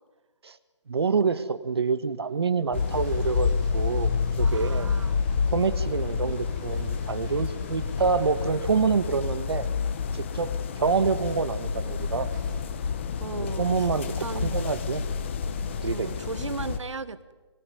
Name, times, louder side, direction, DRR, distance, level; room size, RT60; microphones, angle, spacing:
voice 1, 0.9-4.1 4.4-4.9 5.5-9.7 10.1-12.3 13.4-15.1 15.8-16.1, right 5 dB, 55° right, 13 dB, 1.7 m, -27 dB
sound 1, 2.7-16.8, left 6 dB, 25° left, 1.3 m, -29 dB
sound 2, 2.8-9.9 10.3-10.4 10.6-10.7 12.3-12.7, right 3 dB, 40° right, 6.6 m, -56 dB
voice 2, 4.4-5.1 6.2-6.4 13.2-13.9 14.2-14.5 15.9-17.3, right 4 dB, 75° right, 15 dB, 1.4 m, -36 dB
24.5 x 23.5 x 9.4 m, 1.3 s
hypercardioid pair, 170°, 15 cm